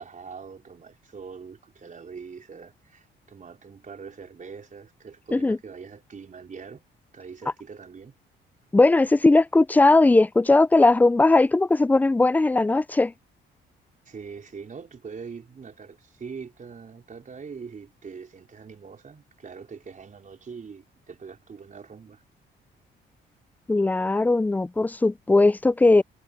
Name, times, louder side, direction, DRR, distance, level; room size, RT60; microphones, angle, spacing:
voice 1, 0.0-6.8 7.1-8.1 14.0-22.2, right 5 dB, 40° right, 4.6 m, -42 dB
voice 2, 8.7-13.1 23.7-26.0, left 2 dB, 10° left, 0.3 m, -19 dB
cardioid pair, 90°, 20 cm